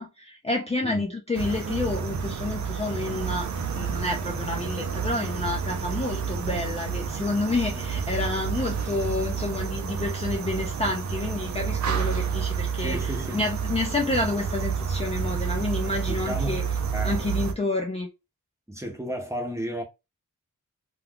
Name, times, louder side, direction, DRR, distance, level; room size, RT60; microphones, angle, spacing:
voice 1, 0.0-3.5 3.7-13.0 13.3-16.6 17.0-18.1, left 2 dB, 20° left, 0.4 m, -29 dB
sound 1, 1.3-17.5, right 6 dB, 60° right, 0.5 m, -29 dB
voice 2, 12.8-13.5 16.1-16.6 16.9-17.1 18.7-19.8, equal, 10° right, 0.7 m, -33 dB
2.3 x 2.3 x 3.5 m
wide cardioid pair, 140°, 32 cm